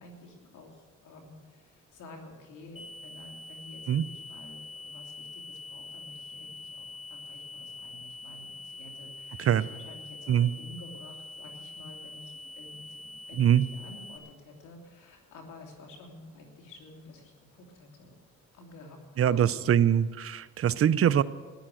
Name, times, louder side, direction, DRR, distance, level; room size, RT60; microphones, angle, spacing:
voice 1, 0.0-18.1 18.5-19.8, left 2 dB, 80° left, 1 dB, 3.1 m, -50 dB
sound 1, 2.8-14.2, left 3 dB, 20° left, 1.8 m, -44 dB
voice 2, 19.2-21.2, right 9 dB, 50° right, 15 dB, 0.6 m, -23 dB
14.0 x 10.0 x 7.8 m, 1.5 s
cardioid pair, 90°, 30 cm